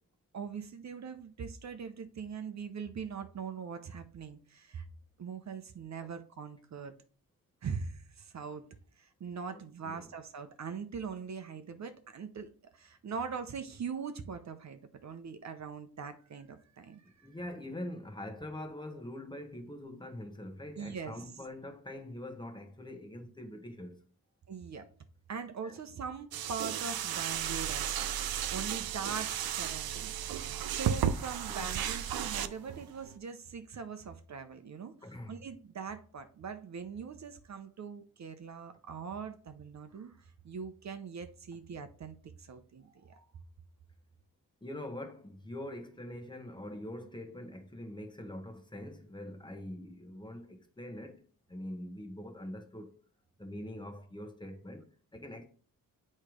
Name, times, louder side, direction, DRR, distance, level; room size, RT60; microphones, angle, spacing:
voice 1, 0.3-4.9 5.2-6.9 7.6-8.7 9.0-17.0 20.7-21.3 24.5-24.9 25.3-28.1 28.5-34.9 35.3-43.2, right 6 dB, 50° right, 0.7 m, -42 dB
voice 2, 9.5-10.1 17.0-24.0 25.6-25.8 31.5-31.7 35.0-35.4 44.6-51.2 51.5-52.9 53.4-54.9 55.1-55.4, left 1 dB, 15° left, 1.1 m, -44 dB
sound 1, 26.3-33.2, right 9 dB, 90° right, 0.6 m, -34 dB
8.5 x 3.2 x 4.9 m
wide cardioid pair, 130°, 35 cm